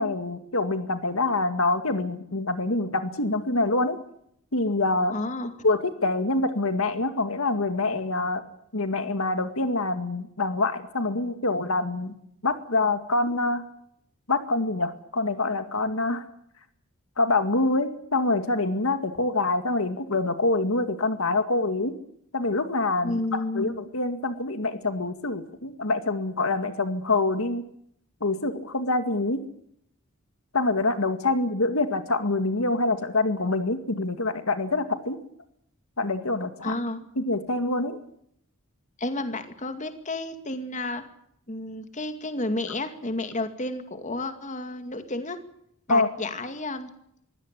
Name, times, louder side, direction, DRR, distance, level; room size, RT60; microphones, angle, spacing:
voice 1, 0.0-4.0 4.5-5.2 5.6-8.4 8.7-12.1 12.4-13.6 14.3-16.2 17.2-21.9 22.3-27.6 28.2-29.4 30.5-35.2 36.0-36.8 37.2-38.0 45.9-46.1, left 2 dB, 70° left, 9 dB, 2.1 m, -25 dB
voice 2, 5.1-5.5 23.0-23.8 36.6-37.1 39.0-41.0 41.5-45.4 45.9-46.9, left 2 dB, 35° left, 8 dB, 2.3 m, -31 dB
23.5 x 17.0 x 8.4 m, 0.71 s
head